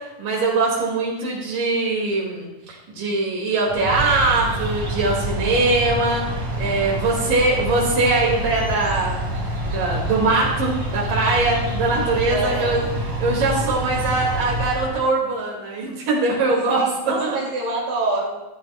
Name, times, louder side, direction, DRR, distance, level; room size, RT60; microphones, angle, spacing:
voice 1, 0.0-2.5 2.9-12.8 13.2-16.8 17.2-17.4, right 3 dB, 85° right, -3 dB, 3.9 m, -22 dB
sound 1, 3.7-15.1, right 1 dB, 70° right, 5.2 m, -27 dB
voice 2, 6.7-7.2 12.3-12.8 16.8-18.3, right 2 dB, 45° right, -4 dB, 3.2 m, -27 dB
15.0 x 12.5 x 2.4 m, 1.0 s
omnidirectional pair, 3.7 m